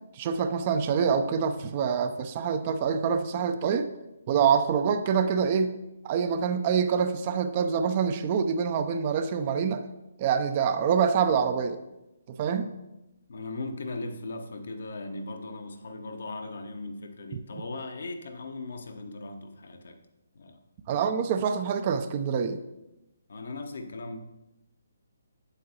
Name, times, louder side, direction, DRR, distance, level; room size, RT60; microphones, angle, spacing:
voice 1, 0.1-3.9 4.3-5.7 6.0-9.8 10.2-11.8 12.3-12.7 20.9-22.6, right 6 dB, 30° right, 9 dB, 0.5 m, -26 dB
voice 2, 13.3-20.0 20.3-20.6 23.3-24.2, left 2 dB, 55° left, 5 dB, 0.9 m, -38 dB
8.3 x 8.1 x 2.9 m, 0.95 s
figure-of-eight pair, 135°, 0 cm